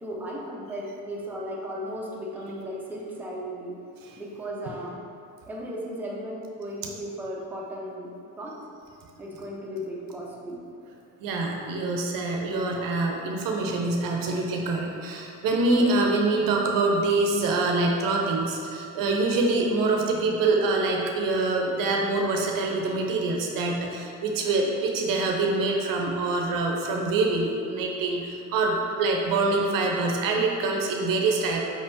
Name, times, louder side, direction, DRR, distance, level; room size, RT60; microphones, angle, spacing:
voice 1, 0.0-3.8 4.2-5.1 5.5-8.6 9.2-10.6 29.2-29.4, equal, 5° right, -4 dB, 0.7 m, -36 dB
voice 2, 11.2-31.6, right 3 dB, 65° right, 1 dB, 0.6 m, -25 dB
4.9 x 3.4 x 2.7 m, 2.4 s
supercardioid pair, 85°, 37 cm